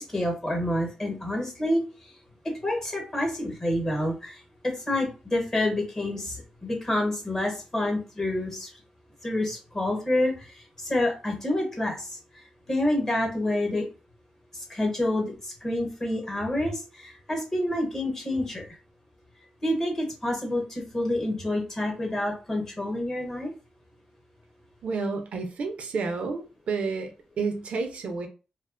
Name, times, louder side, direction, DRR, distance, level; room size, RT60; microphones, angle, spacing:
voice 1, 0.0-1.8 2.6-8.7 9.2-12.4 12.7-13.9 14.7-18.7 19.6-23.5, left 1 dB, 25° left, 1.0 m, -28 dB
voice 2, 24.8-28.3, right 4 dB, 70° right, 0.4 m, -30 dB
2.3 x 2.2 x 2.4 m
wide cardioid pair, 125°, 2 cm